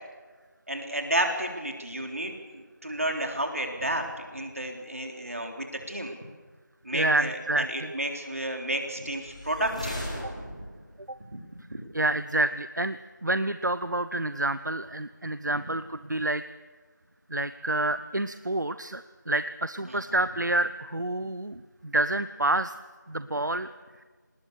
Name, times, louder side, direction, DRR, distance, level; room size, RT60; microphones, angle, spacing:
voice 1, 0.7-6.1 6.8-10.1 11.3-11.4 11.7-11.9 19.9-20.0, right 1 dB, 45° right, 3 dB, 3.6 m, -31 dB
voice 2, 6.9-7.9 11.9-16.4 17.3-22.7 23.1-23.7, right 2 dB, 65° right, 12 dB, 0.8 m, -28 dB
sound 1, 9.2-11.0, equal, 20° left, 4.1 m, -37 dB
25.5 x 20.0 x 6.8 m, 1.4 s
figure-of-eight pair, 175°, 10 cm